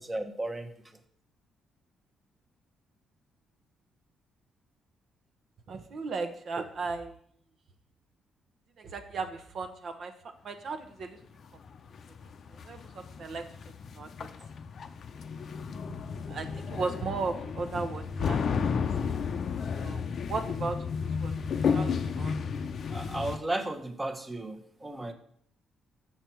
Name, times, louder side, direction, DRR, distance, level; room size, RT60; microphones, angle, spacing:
voice 1, 0.1-0.7 22.9-25.1, right 2 dB, 20° right, 6 dB, 1.0 m, -34 dB
voice 2, 5.7-7.1 8.8-10.1 10.4-11.2 12.6-13.5 14.0-14.1 16.3-18.7 19.0-19.1 19.7-20.8 21.2-22.4, right 4 dB, 60° right, 7 dB, 0.9 m, -36 dB
sound 1, 11.7-23.4, left 6 dB, 55° left, 0.6 m, -32 dB
6.9 x 6.1 x 4.5 m, 0.64 s
cardioid pair, 90°, 0 cm